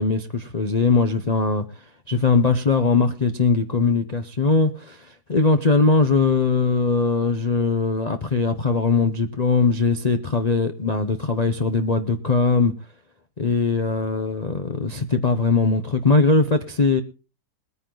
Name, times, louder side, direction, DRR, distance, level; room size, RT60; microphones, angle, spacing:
voice 1, 0.0-1.6 2.1-12.7 13.4-17.0, left 4 dB, 40° left, 0.6 m, -20 dB
21.0 x 9.5 x 3.8 m
omnidirectional pair, 1.8 m